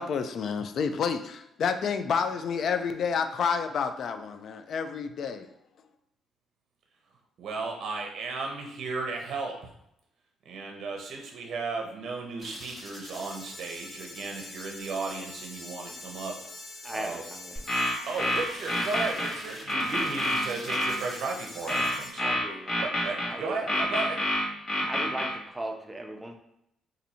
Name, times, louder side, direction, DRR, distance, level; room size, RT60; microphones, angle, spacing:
voice 1, 0.0-5.5, left 6 dB, 55° left, 8 dB, 0.3 m, -29 dB
voice 2, 7.4-9.6 10.5-16.4 16.9-17.2 18.1-22.4 22.8-24.2, right 4 dB, 65° right, 2 dB, 0.6 m, -35 dB
sound 1, 12.4-22.1, left 1 dB, 20° left, 0.8 m, -44 dB
voice 3, 16.8-17.7 22.2-23.8 24.8-26.3, right 1 dB, 10° right, 3 dB, 0.5 m, -38 dB
sound 2, 17.6-19.3 19.7-20.9 21.7-23.3 23.7-25.3, left 1 dB, 40° left, 1.4 m, -27 dB
2.6 x 2.6 x 4.2 m, 0.78 s
cardioid pair, 135°, 0 cm